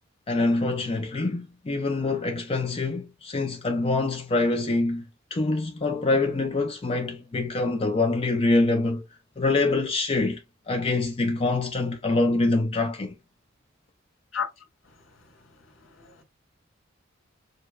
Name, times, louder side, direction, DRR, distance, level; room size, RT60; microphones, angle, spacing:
voice 1, 0.3-9.0 9.4-10.4 10.7-13.2, left 2 dB, 30° left, 0.5 m, -25 dB
voice 2, 15.9-16.2, left 7 dB, 80° left, 1.8 m, -32 dB
6.4 x 2.2 x 2.3 m
head